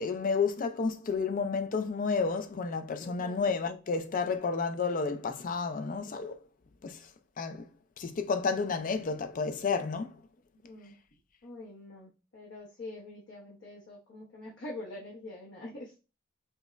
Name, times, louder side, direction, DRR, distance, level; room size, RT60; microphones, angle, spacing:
voice 1, 0.0-6.3 6.8-7.0 7.4-7.6 8.0-10.1, left 4 dB, 40° left, 0.4 m, -31 dB
voice 2, 3.0-3.4 10.6-10.9 11.4-15.9, left 2 dB, 60° left, 0.8 m, -45 dB
5.2 x 2.0 x 2.4 m
head